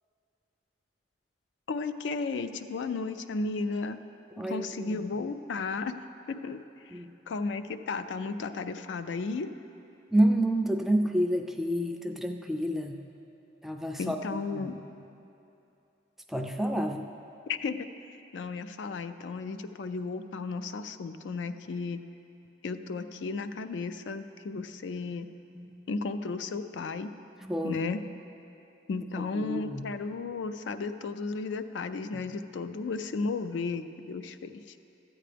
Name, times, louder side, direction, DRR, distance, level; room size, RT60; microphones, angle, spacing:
voice 1, 1.7-4.0 4.5-5.9 6.3-6.6 7.3-9.5 14.0-14.8 17.5-17.9 18.3-22.0 22.6-25.3 25.9-27.1 27.6-28.0 28.9-34.5, left 4 dB, 80° left, 10 dB, 0.4 m, -34 dB
voice 2, 4.4-5.0 6.9-7.1 10.1-13.0 13.6-14.2 14.5-14.8 16.3-17.0 25.6-25.8 27.4-27.9 29.3-29.9 32.1-32.2, right 1 dB, ahead, 3 dB, 0.3 m, -29 dB
13.5 x 8.7 x 3.4 m, 2.8 s
head